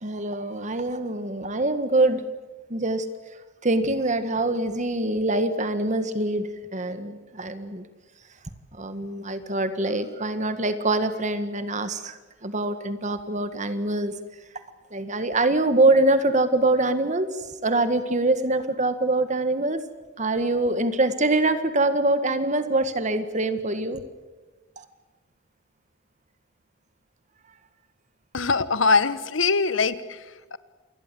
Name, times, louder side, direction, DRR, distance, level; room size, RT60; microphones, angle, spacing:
voice 1, 0.0-2.2 2.7-3.1 3.6-7.8 8.7-14.1 14.9-19.8 20.2-24.0 24.8-24.9, right 2 dB, 40° right, 10 dB, 1.8 m, -24 dB
voice 2, 28.3-30.2 30.5-30.6, left 4 dB, 80° left, 14 dB, 1.3 m, -22 dB
28.0 x 21.5 x 7.7 m, 1.2 s
head